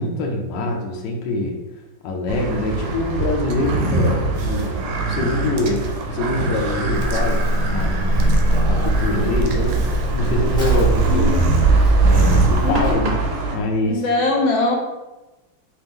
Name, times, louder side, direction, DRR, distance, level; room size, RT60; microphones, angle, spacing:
voice 1, 0.0-1.6 2.0-7.4 7.7-8.1 8.7-11.3 12.0-13.2 13.5-14.0, left 2 dB, 70° left, 1 dB, 1.2 m, -24 dB
sound 1, 2.3-13.6, right 3 dB, 90° right, 1.5 m, -23 dB
sound 2, 3.5-13.2, right 2 dB, 75° right, 1.1 m, -25 dB
Livestock farm animals working animals, 6.9-12.9, equal, 5° left, 0.6 m, -22 dB
voice 2, 11.1-11.5 12.6-13.0 13.8-14.8, left 2 dB, 90° left, 0 dB, 1.6 m, -22 dB
3.6 x 2.9 x 3.6 m, 1.1 s
omnidirectional pair, 2.1 m